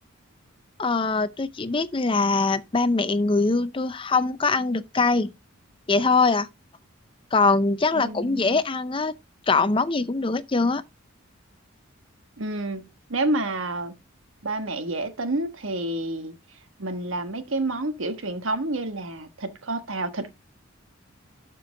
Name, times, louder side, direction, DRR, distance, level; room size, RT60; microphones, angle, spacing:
voice 1, 0.8-5.3 5.9-6.5 7.3-9.1 9.5-10.8, left 3 dB, 25° left, 0.5 m, -22 dB
voice 2, 7.9-8.6 12.4-14.0 14.4-16.3 16.8-20.3, right 2 dB, 70° right, 1.3 m, -29 dB
12.5 x 4.5 x 3.7 m
head